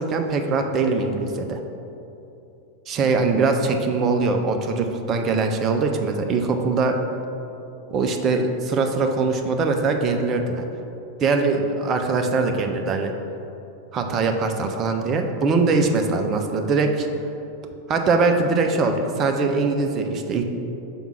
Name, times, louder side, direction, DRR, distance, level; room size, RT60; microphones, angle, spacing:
voice 1, 0.0-1.6 2.9-7.0 7.9-10.7 11.2-13.1 13.9-17.1 17.9-20.4, right 4 dB, 30° right, 4 dB, 0.6 m, -22 dB
5.9 x 3.6 x 5.7 m, 2.8 s
figure-of-eight pair, 90°, 0 cm